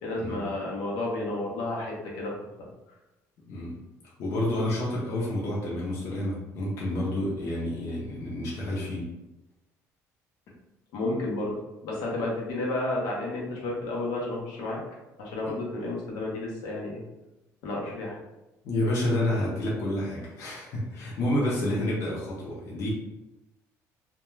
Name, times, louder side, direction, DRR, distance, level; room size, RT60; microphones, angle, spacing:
voice 1, 0.0-2.3 10.9-11.6 11.8-14.8 15.2-17.0 17.6-18.2, left 2 dB, 80° left, -3 dB, 0.7 m, -31 dB
voice 2, 4.2-9.0 18.6-22.9, left 1 dB, 45° left, -5 dB, 0.6 m, -29 dB
2.2 x 2.2 x 3.0 m, 0.99 s
cardioid pair, 175°, 6 cm